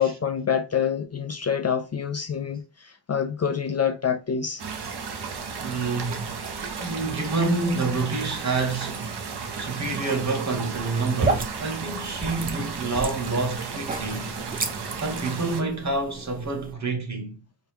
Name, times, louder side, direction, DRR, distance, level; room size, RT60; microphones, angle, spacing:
voice 1, 0.0-4.6, left 7 dB, 40° left, 0.4 m, -26 dB
sound 1, 4.6-15.6, right 5 dB, 70° right, 0.8 m, -34 dB
voice 2, 5.6-6.3 6.8-9.2 9.5-14.3 15.0-17.4, right 3 dB, 45° right, 1.1 m, -28 dB
sound 2, 10.7-16.7, right 3 dB, 20° right, 0.4 m, -32 dB
4.5 x 2.2 x 3.4 m
wide cardioid pair, 115°, 41 cm